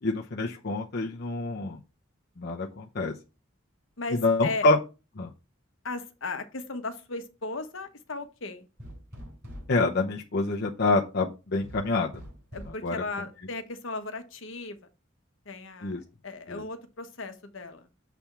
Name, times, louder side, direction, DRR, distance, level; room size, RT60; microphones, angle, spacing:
voice 1, 0.0-1.8 2.4-3.1 4.1-4.8 5.2-5.3 9.7-12.2 12.8-13.0 15.8-16.0 16.5-16.6, left 3 dB, 55° left, 0.7 m, -26 dB
voice 2, 4.0-4.7 5.8-8.7 12.5-14.8 15.5-17.9, left 3 dB, 75° left, 1.1 m, -36 dB
sound 1, 8.8-9.8 11.6-12.8, equal, 50° right, 4.4 m, -43 dB
7.1 x 3.4 x 5.9 m
head